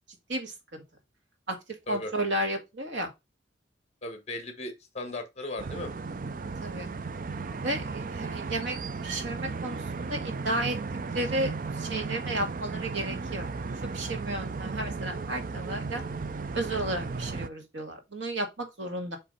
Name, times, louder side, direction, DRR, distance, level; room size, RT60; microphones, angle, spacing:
voice 1, 0.3-0.8 1.5-1.6 1.9-3.1 6.6-6.9 7.6-8.8 9.0-10.8 11.1-11.5 11.8-13.7 13.9-16.0 16.5-19.2, right 1 dB, 85° right, 2.0 m, -33 dB
voice 2, 4.0-5.9, left 1 dB, 35° left, 1.5 m, -37 dB
sound 1, 5.6-17.5, right 4 dB, 45° right, 0.5 m, -35 dB
7.0 x 3.3 x 5.2 m
head